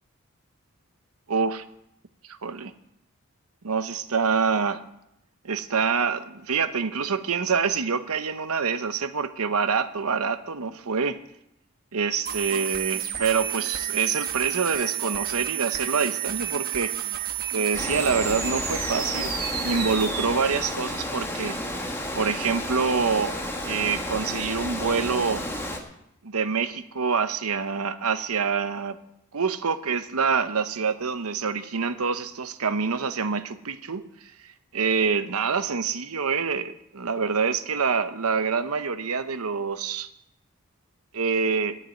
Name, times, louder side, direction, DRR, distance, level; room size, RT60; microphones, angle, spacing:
voice 1, 1.3-1.6 2.3-2.7 3.6-4.8 5.4-11.2 11.9-16.9 17.5-21.6 22.1-23.4 23.6-25.5 26.2-29.0 29.3-34.1 34.7-40.1 41.1-41.8, right 5 dB, 85° right, 11 dB, 0.9 m, -26 dB
sound 1, 12.2-20.2, right 10 dB, 40° right, 1.3 m, -30 dB
Water, 17.7-25.8, left 1 dB, 10° left, 1.3 m, -32 dB
11.5 x 7.5 x 9.3 m, 0.81 s
head